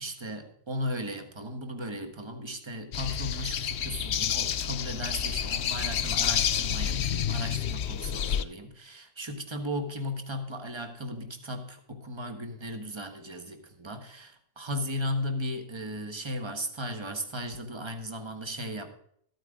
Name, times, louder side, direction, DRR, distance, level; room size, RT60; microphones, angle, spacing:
voice 1, 0.0-18.9, equal, 25° right, 7 dB, 1.4 m, -36 dB
sound 1, 2.9-8.4, left 9 dB, 75° left, 0.9 m, -29 dB
14.0 x 8.9 x 3.7 m, 0.67 s
omnidirectional pair, 1.1 m